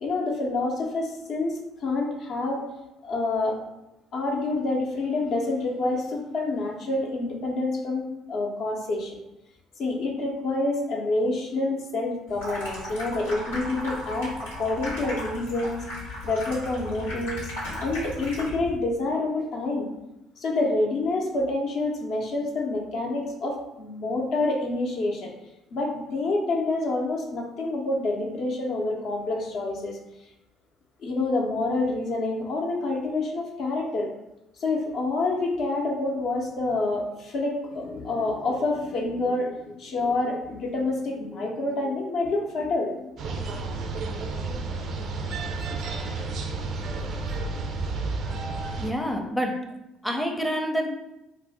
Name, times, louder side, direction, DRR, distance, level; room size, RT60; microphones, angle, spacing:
voice 1, 0.0-2.6 3.0-3.6 4.1-9.2 9.8-14.3 14.6-15.9 16.2-17.5 17.8-19.9 20.4-25.3 25.7-30.0 31.0-34.1 34.6-43.1, left 2 dB, 60° left, -1 dB, 0.6 m, -27 dB
Water tap faucet / Sink (filling or washing), 12.3-18.8, left 1 dB, 85° left, 0.9 m, -35 dB
sound 1, 43.2-48.9, right 3 dB, 55° right, 0.3 m, -31 dB
voice 2, 48.8-49.6 50.0-50.9, equal, ahead, 2 dB, 0.5 m, -27 dB
2.6 x 2.0 x 4.0 m, 0.91 s
hypercardioid pair, 55°, 0 cm